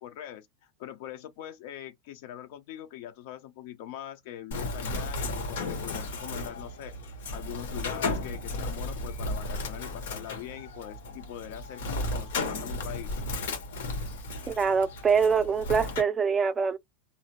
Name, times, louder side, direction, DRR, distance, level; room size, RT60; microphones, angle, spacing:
voice 1, 0.0-6.9 7.3-13.2, left 12 dB, 60° left, 0.5 m, -42 dB
Bird, 4.5-16.0, left 2 dB, 90° left, 1.2 m, -34 dB
voice 2, 14.5-16.8, right 6 dB, 15° right, 0.4 m, -24 dB
2.6 x 2.1 x 2.9 m
supercardioid pair, 150°, 0 cm